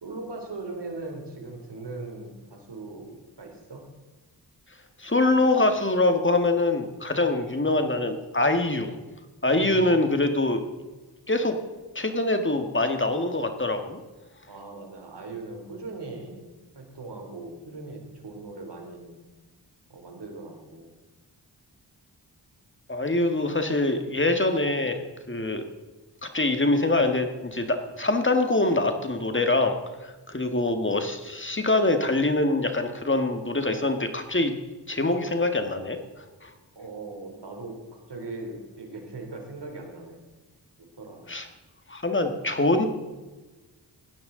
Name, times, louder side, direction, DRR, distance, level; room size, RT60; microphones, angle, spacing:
voice 1, 0.0-3.9 9.5-10.0 14.5-19.2 19.9-20.9 36.7-40.2 41.0-41.2, right 3 dB, 70° right, 2 dB, 3.3 m, -39 dB
voice 2, 5.0-8.9 9.4-10.6 11.3-11.6 12.0-14.0 22.9-25.0 25.3-25.6 26.2-34.5 34.9-36.0 36.4-36.5 41.3-41.5 41.9-42.9, left 2 dB, 25° left, 6 dB, 1.8 m, -24 dB
17.0 x 11.0 x 3.9 m, 1.2 s
cardioid pair, 50°, 43 cm